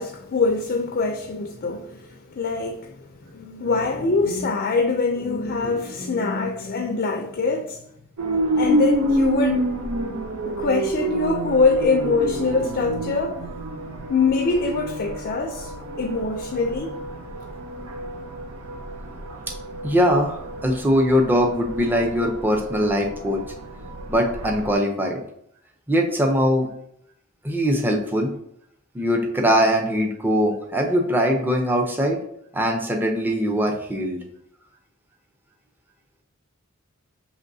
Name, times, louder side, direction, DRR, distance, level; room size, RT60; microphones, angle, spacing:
voice 1, 0.0-3.0 3.3-7.8 8.6-9.7 10.5-13.4 14.1-17.0, left 4 dB, 45° left, 0.4 m, -24 dB
sound 1, 8.2-24.7, right 1 dB, 85° right, 0.6 m, -29 dB
voice 2, 19.8-23.4 24.1-25.2 25.9-26.7 27.4-28.3 28.9-32.2 32.5-34.2, equal, 10° right, 0.5 m, -21 dB
6.4 x 3.0 x 2.6 m
head